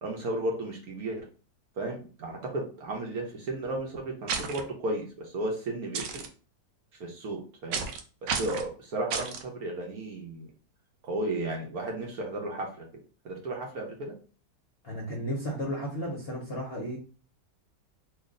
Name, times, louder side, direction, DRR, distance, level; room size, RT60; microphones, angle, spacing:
voice 1, 0.0-1.2 1.8-6.2 7.0-7.9 8.2-10.5 11.0-12.8 13.2-14.1, right 2 dB, 65° right, 0 dB, 1.2 m, -34 dB
sound 1, 4.3-4.6 5.9-6.3 7.7-8.0 8.3-8.7 9.1-9.4, right 6 dB, 90° right, 1.3 m, -31 dB
voice 2, 14.8-17.0, equal, 45° left, -2 dB, 0.8 m, -33 dB
3.2 x 2.4 x 3.6 m, 0.38 s
omnidirectional pair, 1.9 m